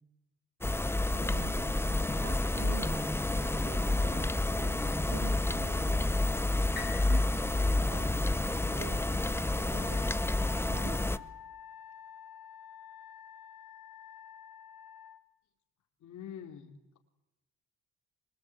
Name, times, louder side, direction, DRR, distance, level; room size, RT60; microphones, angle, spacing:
sound 1, 0.6-11.2, left 2 dB, 10° left, 0.8 m, -29 dB
voice 1, 1.1-11.3, right 6 dB, 60° right, 6 dB, 3.2 m, -46 dB
sound 2, 6.7-10.7 11.3-11.4, left 6 dB, 35° left, 2.3 m, -49 dB
Wind instrument woodwind instrument, 9.7-15.2, left 8 dB, 90° left, 1.7 m, -49 dB
voice 2, 16.0-17.0, left 9 dB, 75° left, 4 dB, 3.3 m, -46 dB
25.0 x 22.0 x 8.6 m, 0.90 s
cardioid pair, 90°, 30 cm